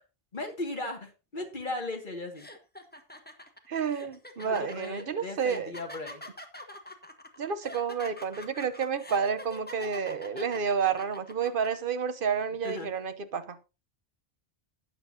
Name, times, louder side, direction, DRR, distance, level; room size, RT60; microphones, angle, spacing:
voice 1, 0.3-2.5 4.4-6.2 12.6-12.9, left 2 dB, 50° left, 2.3 m, -37 dB
sound 1, 1.7-1.8 2.3-11.7, left 1 dB, 10° left, 1.3 m, -45 dB
voice 2, 3.7-5.7 7.4-13.6, right 6 dB, 60° right, 1.1 m, -30 dB
13.0 x 9.4 x 2.8 m
omnidirectional pair, 1.0 m